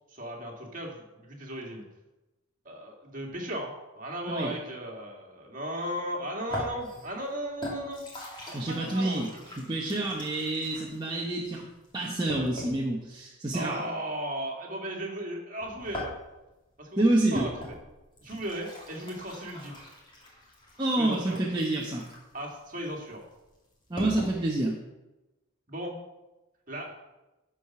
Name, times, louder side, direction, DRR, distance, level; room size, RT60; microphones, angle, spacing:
voice 1, 0.1-1.8 2.6-8.0 8.5-9.4 13.5-16.1 16.8-17.5 18.2-19.9 21.0-21.4 22.3-23.3 25.7-26.0 26.7-27.1, equal, 40° right, 0 dB, 2.1 m, -36 dB
sound 1, 6.5-12.9 15.6-24.4, equal, 20° left, 2.4 m, -42 dB
voice 2, 8.5-9.3 9.6-11.6 11.9-13.8 17.0-17.5 20.8-22.1 23.9-24.8, right 2 dB, 20° right, -3 dB, 0.9 m, -28 dB
12.0 x 4.9 x 5.9 m, 1.0 s
head